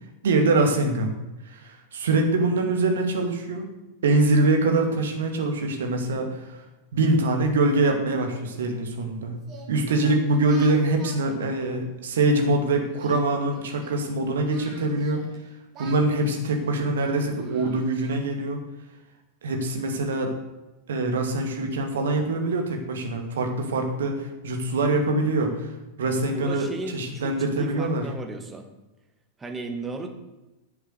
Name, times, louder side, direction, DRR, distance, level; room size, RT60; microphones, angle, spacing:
voice 1, 0.2-1.1 1.5-3.7 4.0-6.6 6.9-9.4 9.7-15.2 15.8-18.6 19.4-20.3 20.9-25.7 26.0-28.1, right 2 dB, 65° right, 4 dB, 2.3 m, -24 dB
Singing, 9.4-12.5 12.9-15.4 15.7-18.3, right 3 dB, 35° right, 3.5 m, -47 dB
voice 2, 26.3-28.7 29.4-30.2, right 3 dB, 15° right, 5 dB, 1.8 m, -35 dB
11.0 x 8.0 x 6.6 m, 1.0 s
figure-of-eight pair, 90°, 0 cm